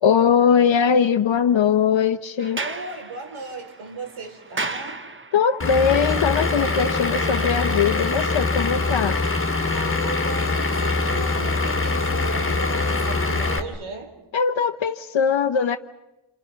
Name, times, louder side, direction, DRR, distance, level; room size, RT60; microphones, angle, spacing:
voice 1, 0.0-2.6 5.3-9.2 14.3-15.8, left 7 dB, 70° left, 6 dB, 1.0 m, -20 dB
Sliding door, 2.4-5.6, right 3 dB, 25° right, 1.1 m, -34 dB
voice 2, 2.6-5.0 9.7-14.1, right 3 dB, 85° right, 4 dB, 3.9 m, -36 dB
Vehicle / Engine, 5.6-13.6, left 3 dB, 25° left, 2.5 m, -23 dB
30.0 x 29.5 x 5.8 m, 0.95 s
wide cardioid pair, 160°, 47 cm